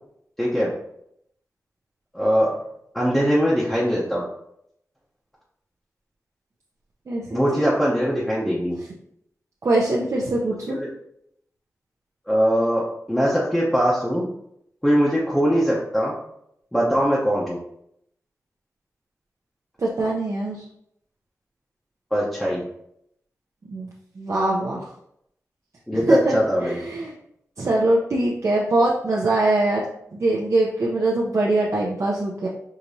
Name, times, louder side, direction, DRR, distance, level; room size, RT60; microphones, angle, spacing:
voice 1, 0.4-0.7 2.1-2.6 2.9-4.3 7.3-8.8 10.7-10.9 12.3-14.3 14.8-16.1 16.7-17.6 22.1-22.7 25.9-26.8, equal, 5° left, -7 dB, 0.7 m, -21 dB
voice 2, 7.1-7.7 9.6-10.8 19.8-20.7 23.7-23.9 24.2-24.9 25.9-26.3 26.6-27.1 27.6-32.5, right 2 dB, 55° right, -4 dB, 0.6 m, -23 dB
4.9 x 2.9 x 2.7 m, 0.74 s
wide cardioid pair, 115°, 6 cm